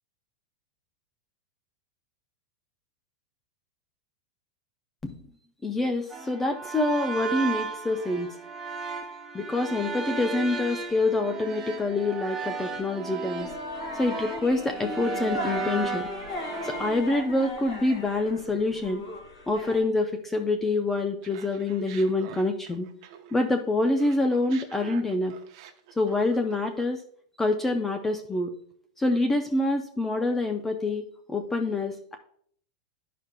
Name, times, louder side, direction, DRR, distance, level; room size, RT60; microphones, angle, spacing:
voice 1, 5.6-8.4 9.3-13.5 13.9-16.1 16.6-19.0 19.5-22.9 23.3-25.3 26.0-27.0 27.4-28.5 29.0-32.2, left 2 dB, 10° left, 6 dB, 0.3 m, -26 dB
sound 1, 6.1-17.0, right 4 dB, 10° right, 0.7 m, -35 dB
sound 2, 13.4-19.8, left 2 dB, 60° left, 2.2 m, -38 dB
Laughter, 21.2-23.5 23.8-27.0, right 9 dB, 50° right, 0.7 m, -47 dB
10.5 x 4.9 x 2.2 m, 0.63 s
supercardioid pair, 170°, 3 cm